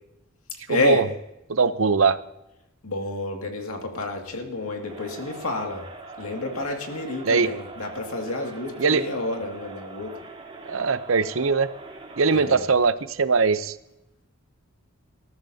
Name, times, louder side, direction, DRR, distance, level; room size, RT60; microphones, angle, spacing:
voice 1, 0.7-1.0 2.8-5.9 6.2-10.1 12.3-12.6, left 2 dB, 85° left, 2 dB, 2.2 m, -29 dB
voice 2, 1.5-2.2 7.3-7.5 8.8-9.0 10.7-11.7 12.2-13.7, right 4 dB, 70° right, 13 dB, 0.7 m, -21 dB
Crowd, 4.8-12.9, right 2 dB, 25° right, 2.1 m, -42 dB
20.0 x 14.0 x 2.8 m, 0.88 s
head